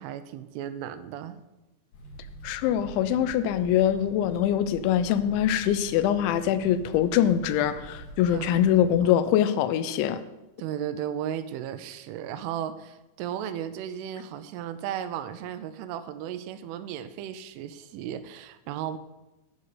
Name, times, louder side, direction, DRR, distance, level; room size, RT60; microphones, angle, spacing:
voice 1, 0.0-1.4 8.3-8.7 9.0-9.1 10.6-19.0, right 10 dB, 85° right, 11 dB, 3.2 m, -35 dB
sound 1, 1.9-9.0, right 2 dB, 60° left, 3.1 m, -45 dB
voice 2, 2.4-10.2, left 10 dB, 80° left, 12 dB, 2.9 m, -23 dB
9.9 x 5.3 x 8.1 m, 0.99 s
omnidirectional pair, 5.6 m